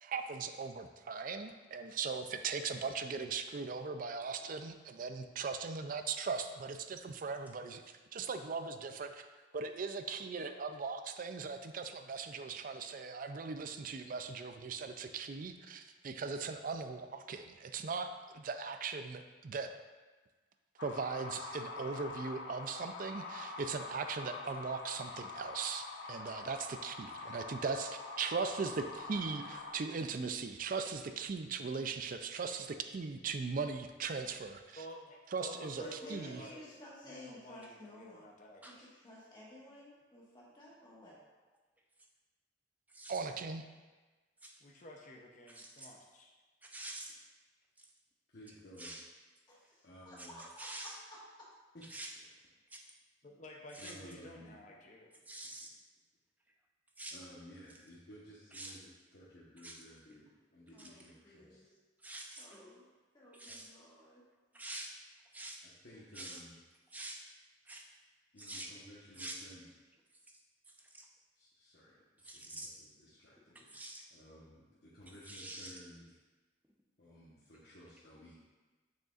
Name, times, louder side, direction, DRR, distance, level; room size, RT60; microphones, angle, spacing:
voice 1, 0.0-9.1 9.5-19.7 20.8-34.8 35.3-36.4 43.1-43.6, right 5 dB, 45° right, 8 dB, 0.4 m, -39 dB
sound 1, 20.8-29.7, left 3 dB, 80° left, 0.7 m, -45 dB
voice 2, 34.8-36.6 37.1-38.9 44.6-46.3 53.2-55.1, equal, 40° left, 0 dB, 0.6 m, -51 dB
voice 3, 35.8-38.3 38.6-41.1 49.5-51.2 60.7-61.7 62.4-62.9 63.1-64.2, left 1 dB, 25° left, -6 dB, 1.5 m, -54 dB
voice 4, 42.9-43.3 44.4-44.5 45.5-45.9 46.6-47.2 47.8-47.9 48.8-49.0 50.2-50.3 50.6-51.0 51.9-52.2 52.7-52.9 53.7-54.0 55.2-55.7 57.0-57.2 58.5-58.8 59.6-59.8 60.8-61.2 62.0-62.9 63.3-63.7 64.5-64.9 65.3-65.6 66.1-66.4 66.9-67.2 67.6-67.9 68.4-68.7 69.1-69.4 70.7-71.1 72.2-72.7 73.5-74.1 75.3-75.7, right 1 dB, 10° right, -1 dB, 0.7 m, -47 dB
voice 5, 48.3-48.9 49.8-50.4 51.7-51.9 53.8-54.7 57.1-61.6 65.8-66.5 68.3-69.7 71.3-73.7 74.1-76.1 77.0-78.3, equal, 60° left, -9 dB, 1.1 m, -55 dB
6.6 x 6.5 x 2.4 m, 1.3 s
head